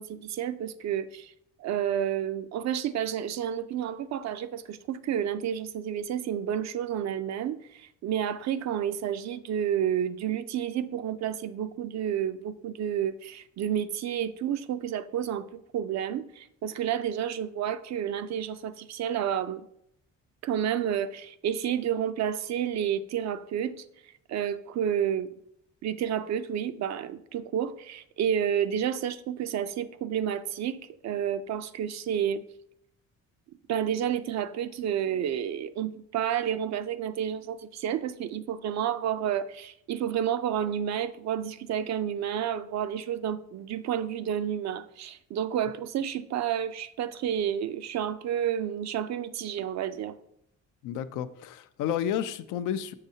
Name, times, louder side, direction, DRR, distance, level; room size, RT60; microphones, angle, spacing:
voice 1, 0.0-1.3 1.6-19.7 20.4-23.8 24.3-25.3 25.8-32.4 33.7-50.2, right 9 dB, 65° right, 0.5 m, -30 dB
voice 2, 50.8-52.9, left 9 dB, 90° left, 0.5 m, -31 dB
6.5 x 6.3 x 2.7 m
cardioid pair, 90°, 30 cm